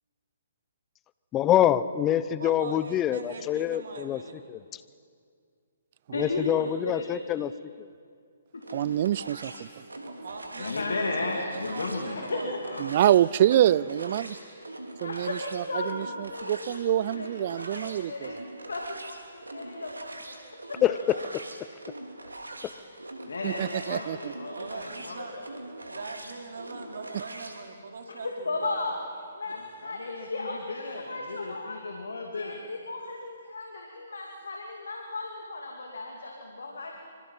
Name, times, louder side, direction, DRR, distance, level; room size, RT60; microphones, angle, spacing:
voice 1, 1.3-4.2 4.5-4.6 6.1-7.5 7.8-7.9 20.8-21.2, left 11 dB, 20° left, 16 dB, 0.8 m, -25 dB
voice 2, 2.4-4.4 10.0-10.8 11.2-13.7 24.5-25.4 25.9-28.9, right 4 dB, 60° right, 3 dB, 3.5 m, -42 dB
voice 3, 6.1-7.4 8.5-9.1 10.6-12.8 14.9-18.4 18.7-20.4 20.7-21.0 23.3-25.2 28.2-37.1, left 2 dB, 75° left, 1 dB, 2.7 m, -35 dB
sound 1, 8.6-27.6, right 1 dB, 85° right, 3.1 m, -43 dB
voice 4, 8.7-9.5 12.8-14.4 15.0-18.3 23.4-24.3, right 12 dB, 45° right, 21 dB, 0.5 m, -25 dB
25.5 x 25.0 x 5.7 m, 2.2 s
figure-of-eight pair, 130°, 0 cm